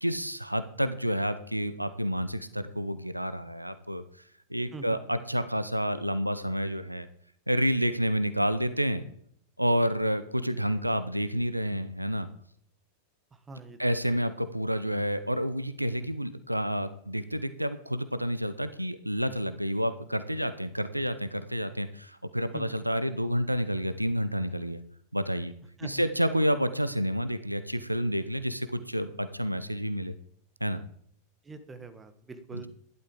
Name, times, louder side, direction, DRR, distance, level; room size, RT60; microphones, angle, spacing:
voice 1, 0.0-4.0 4.5-7.1 7.5-9.0 9.6-12.3 13.8-24.8 25.1-25.5 25.8-30.1 30.6-30.8 32.5-32.7, equal, 90° right, 13 dB, 0.7 m, -29 dB
voice 2, 13.5-13.8 22.5-22.8 25.8-26.0 31.4-32.7, right 3 dB, 15° right, 9 dB, 1.3 m, -43 dB
12.5 x 11.5 x 3.8 m, 0.64 s
figure-of-eight pair, 90°, 0 cm